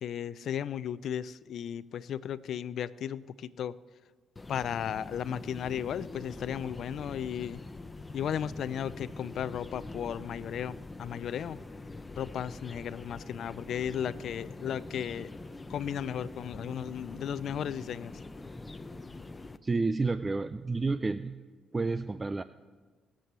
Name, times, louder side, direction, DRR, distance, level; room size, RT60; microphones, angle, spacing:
voice 1, 0.0-3.8 4.5-7.6 8.1-11.6 12.2-15.3 15.7-18.2, left 9 dB, 65° left, 17 dB, 0.5 m, -35 dB
sound 1, 4.4-19.6, left 2 dB, 20° left, 0.7 m, -44 dB
voice 2, 19.6-21.4 21.7-22.4, right 3 dB, 25° right, 13 dB, 0.4 m, -30 dB
19.5 x 7.7 x 6.9 m, 1.5 s
cardioid pair, 90°, 0 cm